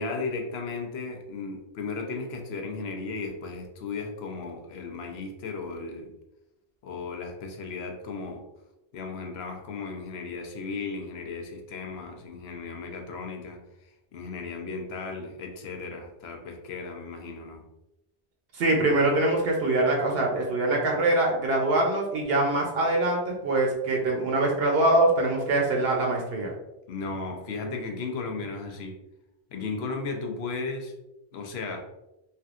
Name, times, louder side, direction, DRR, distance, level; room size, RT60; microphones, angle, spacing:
voice 1, 0.0-6.1 6.8-8.4 8.9-13.6 14.1-17.6 26.9-29.0 29.5-30.9 31.3-31.8, left 4 dB, 75° left, 3 dB, 0.8 m, -35 dB
voice 2, 18.6-26.5, right 2 dB, 70° right, 0 dB, 0.8 m, -24 dB
3.3 x 2.6 x 2.4 m, 0.92 s
omnidirectional pair, 1.1 m